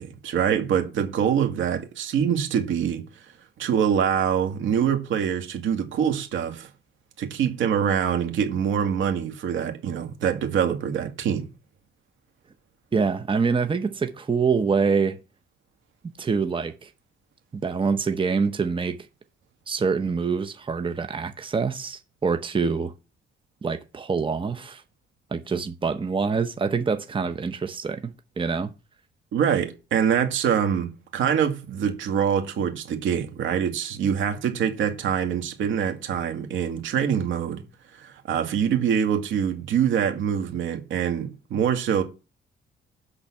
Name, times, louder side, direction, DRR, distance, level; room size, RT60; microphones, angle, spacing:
voice 1, 0.0-3.0 3.6-6.7 7.2-11.5 29.3-37.6 38.0-42.0, right 8 dB, 75° right, 2.0 m, -24 dB
voice 2, 12.9-15.2 16.2-16.9 17.5-19.1 19.7-22.9 23.6-24.8 25.3-28.7, right 5 dB, 25° right, 0.9 m, -25 dB
10.5 x 4.0 x 7.2 m
cardioid pair, 90°, 20 cm